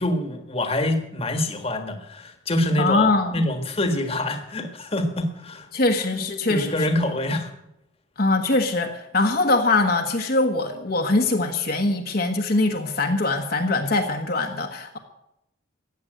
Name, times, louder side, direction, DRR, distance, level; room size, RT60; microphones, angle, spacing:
voice 1, 0.0-5.7 6.5-7.5, left 1 dB, 30° left, 6 dB, 1.6 m, -25 dB
voice 2, 2.8-3.4 5.7-6.9 8.2-15.0, left 2 dB, 50° left, 3 dB, 1.4 m, -22 dB
15.5 x 9.0 x 7.9 m, 0.83 s
head